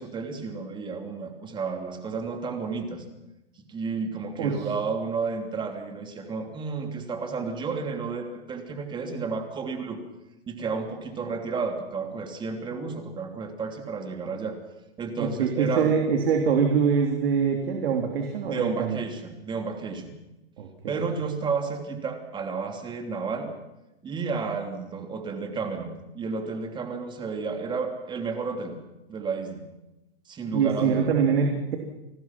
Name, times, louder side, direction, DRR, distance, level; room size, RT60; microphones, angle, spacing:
voice 1, 0.0-3.0 3.7-10.0 10.5-14.6 15.0-15.9 18.4-20.1 20.9-23.5 24.0-28.7 29.1-29.6 30.3-31.1, right 4 dB, 15° right, 5 dB, 3.0 m, -32 dB
voice 2, 15.2-19.0 20.6-21.1 30.5-31.8, right 6 dB, 70° right, 3 dB, 3.4 m, -24 dB
29.5 x 19.5 x 6.1 m, 0.97 s
hypercardioid pair, 150°, 31 cm